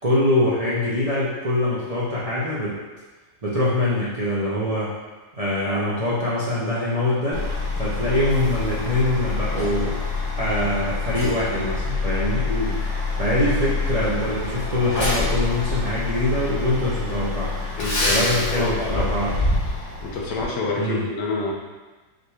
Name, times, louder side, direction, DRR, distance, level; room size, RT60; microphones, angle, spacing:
voice 1, 0.0-2.8 3.4-4.9 5.3-7.4 7.8-9.9 10.4-12.5 13.2-17.5 18.1-19.3 20.7-21.0, left 1 dB, 55° right, -8 dB, 0.4 m, -23 dB
Truck, 7.3-20.4, left 3 dB, 50° left, 1.7 m, -26 dB
voice 2, 12.4-12.8 17.8-19.2 19.7-21.5, left 2 dB, 80° left, -2 dB, 1.4 m, -28 dB
6.2 x 3.1 x 2.3 m, 1.2 s
omnidirectional pair, 1.8 m